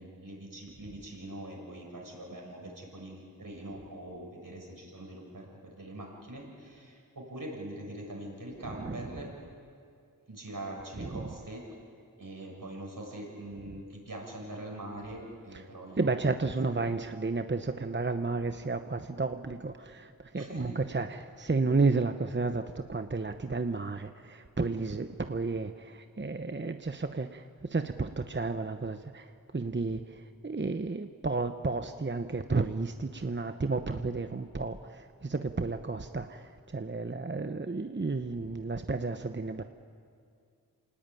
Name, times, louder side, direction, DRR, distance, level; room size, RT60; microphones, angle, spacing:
voice 1, 0.0-9.3 10.3-11.6 12.2-16.3 20.3-20.8, right 1 dB, 70° right, -1 dB, 6.5 m, -43 dB
voice 2, 8.6-9.1 11.0-11.3 16.0-39.6, right 3 dB, 35° right, 8 dB, 0.9 m, -32 dB
27.0 x 19.0 x 9.1 m, 2.4 s
wide cardioid pair, 40°, 34 cm